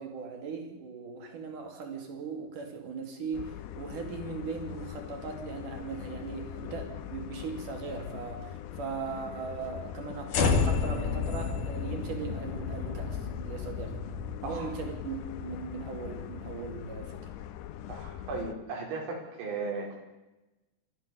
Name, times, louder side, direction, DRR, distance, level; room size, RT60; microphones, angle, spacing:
voice 1, 0.0-14.0 14.4-17.3, right 5 dB, 50° right, 4 dB, 3.9 m, -39 dB
sound 1, 3.3-18.6, left 11 dB, 80° left, 2.9 m, -42 dB
sound 2, 10.3-16.6, left 5 dB, 55° left, 3.1 m, -32 dB
voice 2, 17.9-19.9, right 4 dB, 80° right, 0 dB, 7.0 m, -36 dB
27.0 x 14.0 x 7.0 m, 1.0 s
omnidirectional pair, 5.1 m